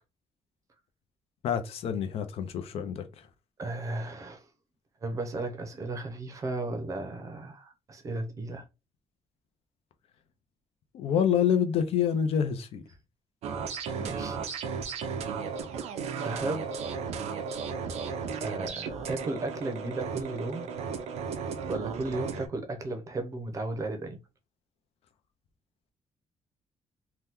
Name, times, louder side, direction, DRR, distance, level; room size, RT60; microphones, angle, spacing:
voice 1, 1.4-3.1 10.9-12.8, left 8 dB, 65° left, 0.6 m, -27 dB
voice 2, 3.6-4.5 5.0-8.7 14.0-14.4 16.2-16.7 18.4-20.6 21.7-24.2, right 2 dB, 30° right, 0.6 m, -35 dB
sound 1, 13.4-22.5, right 6 dB, 90° right, 0.5 m, -35 dB
2.9 x 2.2 x 3.4 m
cardioid pair, 165°, 11 cm